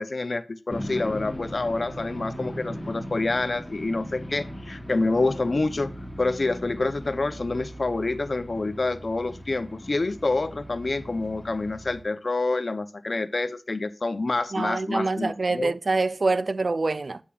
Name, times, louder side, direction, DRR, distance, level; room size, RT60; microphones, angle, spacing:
voice 1, 0.0-5.9 6.2-15.7, left 3 dB, 65° left, 0.5 m, -27 dB
sound 1, 0.7-12.0, equal, 20° left, 1.1 m, -39 dB
voice 2, 14.5-17.2, right 3 dB, 70° right, 0.4 m, -25 dB
8.4 x 7.2 x 2.3 m
wide cardioid pair, 60°, 0 cm